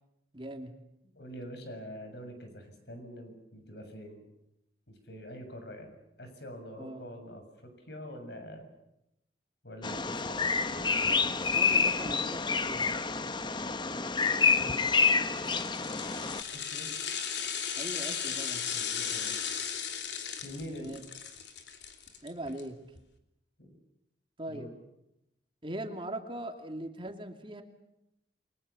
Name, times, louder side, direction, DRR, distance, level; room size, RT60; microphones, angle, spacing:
voice 1, 0.3-0.7 6.8-7.0 11.1-12.8 17.8-18.6 20.8-21.0 22.2-22.8 24.4-24.7 25.6-27.6, right 1 dB, 30° right, 4 dB, 2.7 m, -40 dB
voice 2, 1.1-4.2 4.9-8.7 9.6-10.4 16.5-16.9 18.7-19.6 20.4-20.9 23.6-23.7 24.5-24.7, equal, 70° left, 6 dB, 7.1 m, -45 dB
Bird vocalization bird call bird song, 9.8-16.4, left 5 dB, 25° left, 1.0 m, -28 dB
sound 1, 15.3-22.6 22.9-23.0, left 7 dB, 90° left, 3.2 m, -36 dB
29.5 x 24.5 x 7.1 m, 0.85 s
head